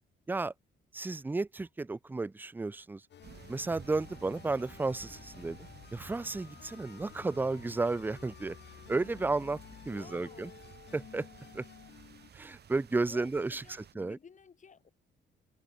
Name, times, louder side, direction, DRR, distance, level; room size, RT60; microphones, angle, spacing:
voice 1, 0.9-3.0 3.5-5.6 5.9-8.6 8.9-9.6 9.9-10.5 10.9-11.3 11.5-11.7 12.3-13.6 14.0-14.2, right 3 dB, 10° right, 0.4 m, -33 dB
sound 1, 3.1-12.3, left 9 dB, 60° left, 2.7 m, -52 dB
sound 2, 3.2-13.9, right 8 dB, 55° right, 2.8 m, -54 dB
voice 2, 10.0-10.6 12.9-14.9, left 6 dB, 40° left, 2.4 m, -55 dB
cardioid pair, 90°, 20 cm